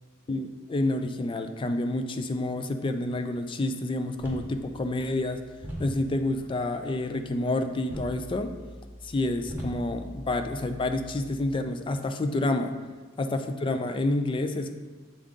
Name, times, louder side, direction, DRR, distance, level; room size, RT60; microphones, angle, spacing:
voice 1, 0.3-5.4 5.8-8.5 9.0-12.7 13.2-14.7, left 2 dB, 25° left, 8 dB, 0.3 m, -29 dB
sound 1, 4.2-11.6, equal, 10° right, 1.3 m, -42 dB
7.2 x 3.6 x 3.8 m, 1.4 s
head